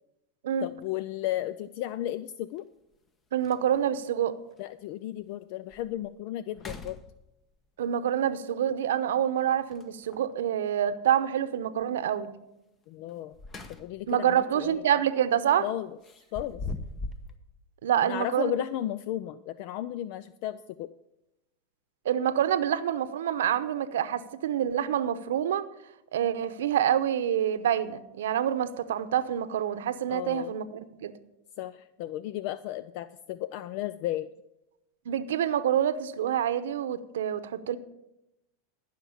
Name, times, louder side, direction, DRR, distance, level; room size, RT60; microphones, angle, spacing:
voice 1, 0.6-2.6 4.6-7.0 12.9-13.4 13.7-14.8 15.6-15.9 16.3-16.6 18.0-20.9 30.1-30.5 31.6-34.3, left 13 dB, 60° left, 15 dB, 0.4 m, -34 dB
sound 1, 0.7-0.8 2.6-2.7 3.1-3.2 3.4-4.0 4.6-4.7 5.2-5.3 5.7-6.1 6.5-7.6 9.7-10.3 13.1-14.1 14.5-14.7 16.0-17.4, left 3 dB, 25° left, 1.0 m, -41 dB
voice 2, 3.3-4.4 7.8-12.3 14.1-15.7 17.8-18.5 22.0-25.6 26.1-31.1 35.1-37.8, right 10 dB, 90° right, 12 dB, 0.8 m, -27 dB
14.5 x 5.9 x 7.2 m, 0.89 s
supercardioid pair, 130°, 0 cm